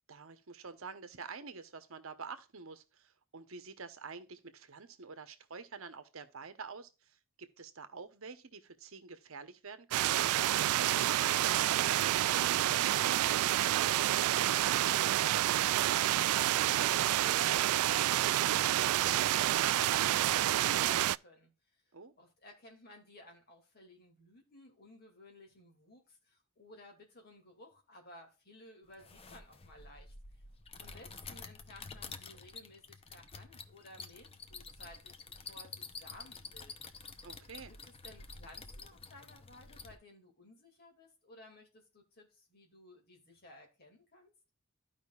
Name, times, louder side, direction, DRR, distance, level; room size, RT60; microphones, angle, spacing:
voice 1, 0.1-10.3 21.9-22.1 37.2-37.7, right 5 dB, 65° right, 0.9 m, -48 dB
sound 1, 9.9-21.2, right 13 dB, 85° right, 0.3 m, -28 dB
voice 2, 10.9-21.5 22.2-30.1 30.8-36.9 37.9-44.3, left 1 dB, 45° left, 2.4 m, -57 dB
sound 2, 28.9-40.0, left 4 dB, 25° left, 0.6 m, -49 dB
13.5 x 5.1 x 2.4 m
head